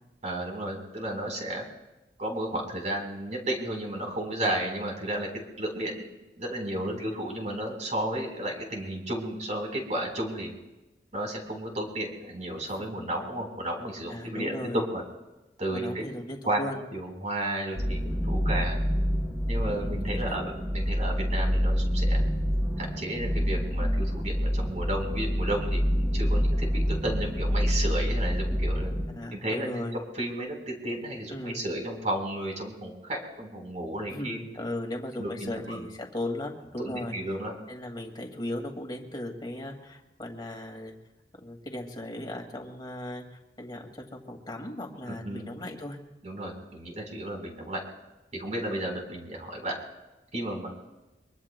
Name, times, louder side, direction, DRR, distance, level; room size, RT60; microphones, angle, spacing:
voice 1, 0.2-1.6 2.2-6.1 6.4-10.5 11.1-15.0 15.6-16.1 16.4-16.6 16.9-18.8 19.5-22.2 22.8-28.9 29.3-34.4 35.2-35.9 36.8-37.5 45.1-45.5 46.2-47.8 48.3-49.8 50.3-50.7, right 1 dB, 40° right, 1 dB, 4.1 m, -33 dB
voice 2, 14.1-14.8 15.7-16.8 18.1-18.5 19.6-19.9 20.3-20.4 29.1-29.9 31.3-31.6 34.1-37.1 37.7-40.9 41.4-43.8 44.1-46.0, left 1 dB, 25° left, 2 dB, 2.1 m, -37 dB
sound 1, 17.8-29.1, equal, 20° right, 5.0 m, -27 dB
24.0 x 23.5 x 2.2 m, 1.0 s
head